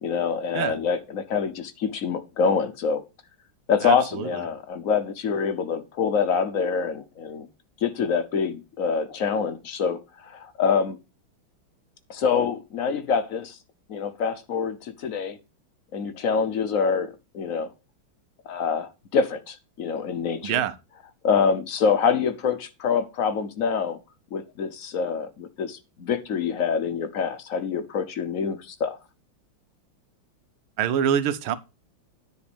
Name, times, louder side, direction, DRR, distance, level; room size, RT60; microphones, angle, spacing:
voice 1, 0.0-3.0 3.7-7.5 7.8-11.0 12.1-13.6 13.9-15.4 15.9-17.7 18.5-20.6 21.2-24.0 24.3-29.0, left 6 dB, 55° left, 1.0 m, -26 dB
voice 2, 3.8-4.4 20.4-20.8 30.8-31.6, right 9 dB, 85° right, 1.6 m, -25 dB
10.0 x 4.2 x 6.8 m
omnidirectional pair, 2.3 m